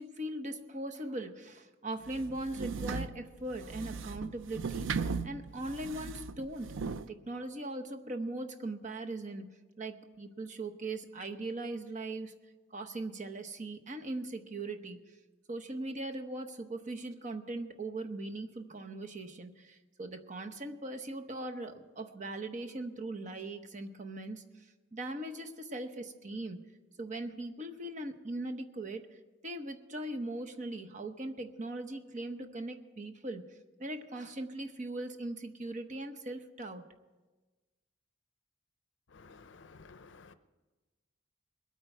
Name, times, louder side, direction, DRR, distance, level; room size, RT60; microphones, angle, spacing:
voice 1, 0.0-6.8 7.1-9.5 9.8-12.3 12.7-15.0 15.5-24.4 24.9-26.6 27.0-29.2 29.4-33.5 33.8-36.9, right 2 dB, 40° right, 0.9 m, -40 dB
sound 1, 2.0-7.1, right 5 dB, 80° right, 0.5 m, -37 dB
voice 2, 39.1-40.3, left 4 dB, 65° left, 0.6 m, -54 dB
21.0 x 8.9 x 4.5 m
head